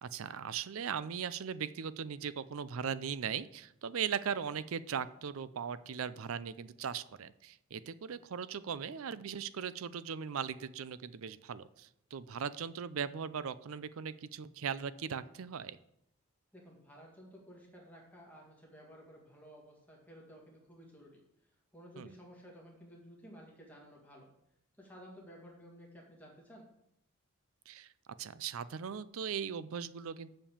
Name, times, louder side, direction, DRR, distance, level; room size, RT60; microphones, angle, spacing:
voice 1, 0.0-15.8 22.0-22.1 27.7-27.9 28.2-30.3, right 7 dB, 75° right, 16 dB, 0.5 m, -39 dB
voice 2, 16.5-24.3 24.8-26.7, equal, 5° left, -2 dB, 1.8 m, -54 dB
7.2 x 5.3 x 7.2 m, 0.79 s
head